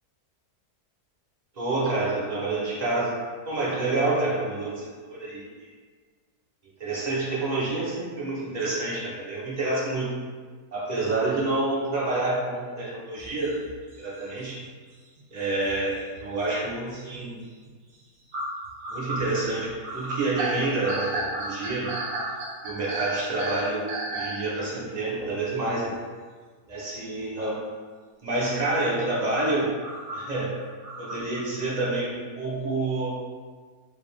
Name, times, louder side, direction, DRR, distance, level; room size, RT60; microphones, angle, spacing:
voice 1, 1.6-5.7 6.8-10.1 10.7-13.6 14.0-14.6 15.3-17.4 18.9-21.9 22.6-25.9 26.7-27.6 28.2-29.7 30.1-30.5 31.0-33.2, right 2 dB, 35° right, -6 dB, 0.8 m, -28 dB
sound 1, 13.2-14.8 15.2-16.7 17.1-17.3 17.6-17.7 18.3-24.4 25.2-25.3 27.2-27.3 29.3-31.6, right 2 dB, 65° right, 1.2 m, -33 dB
4.8 x 2.4 x 3.4 m, 1.5 s
omnidirectional pair, 1.7 m